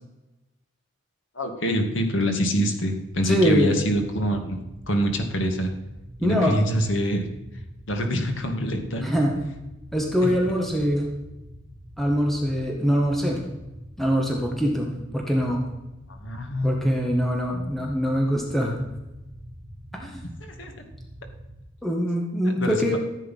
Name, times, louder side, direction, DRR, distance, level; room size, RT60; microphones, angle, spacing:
voice 1, 1.4-4.6 4.9-5.7 6.2-7.3 7.9-9.0 16.1-16.9 20.4-20.8 22.4-23.0, equal, 75° left, 4 dB, 2.1 m, -25 dB
sound 1, 3.1-21.6, equal, 60° right, 1.6 m, -44 dB
voice 2, 3.2-3.8 6.2-6.6 9.0-9.4 9.9-11.1 12.0-13.4 14.0-15.7 16.6-18.8 19.9-20.2 21.8-23.0, equal, ahead, 0 dB, 1.7 m, -23 dB
14.5 x 8.5 x 5.6 m, 1.0 s
head